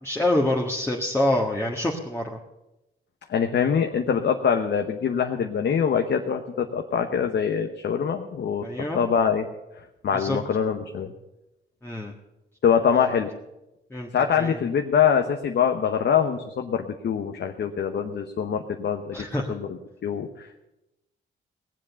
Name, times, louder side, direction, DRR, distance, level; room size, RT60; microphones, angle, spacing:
voice 1, 0.0-2.4 8.6-9.0 10.1-10.4 11.8-12.1 13.9-14.1 14.4-14.6 19.1-19.6, left 1 dB, 10° left, -1 dB, 1.6 m, -26 dB
voice 2, 3.3-8.6 8.9-9.5 10.0-11.1 12.6-13.3 14.1-19.2 19.5-20.7, left 7 dB, 60° left, 5 dB, 1.0 m, -24 dB
18.5 x 7.6 x 7.0 m, 0.95 s
cardioid pair, 85°, 20 cm